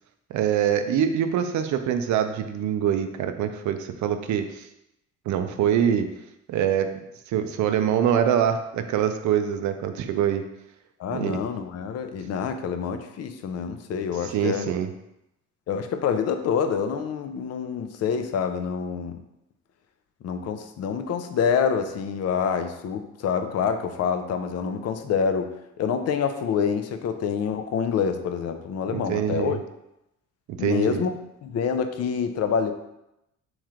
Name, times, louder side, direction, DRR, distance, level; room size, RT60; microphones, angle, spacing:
voice 1, 0.3-4.7 5.3-6.1 6.5-6.9 7.3-10.4 11.1-11.4 14.2-14.9 28.9-29.6 30.6-31.0, right 9 dB, 70° right, 8 dB, 0.5 m, -24 dB
voice 2, 11.0-14.7 15.7-19.2 20.2-29.6 30.6-31.2 31.4-32.7, left 6 dB, 55° left, 7 dB, 0.5 m, -27 dB
3.2 x 3.0 x 3.6 m, 0.86 s
cardioid pair, 90°, 30 cm